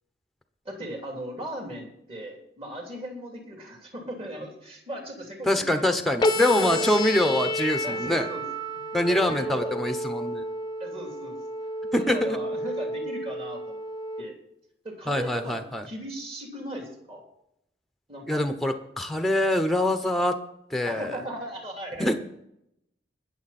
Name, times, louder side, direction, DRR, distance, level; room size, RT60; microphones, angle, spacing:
voice 1, 0.6-5.8 6.4-6.9 7.8-8.4 8.9-9.8 10.8-11.3 11.9-13.8 14.2-14.4 14.8-17.2 18.1-18.4 20.8-22.2, right 1 dB, 30° right, 1 dB, 3.1 m, -38 dB
voice 2, 5.5-8.3 8.9-10.4 11.9-12.4 15.1-15.8 18.3-20.4 20.7-21.2 22.0-22.2, left 1 dB, ahead, 7 dB, 1.0 m, -24 dB
sound 1, 6.2-14.2, equal, 20° left, 0.7 m, -30 dB
20.5 x 7.3 x 4.3 m, 0.77 s
head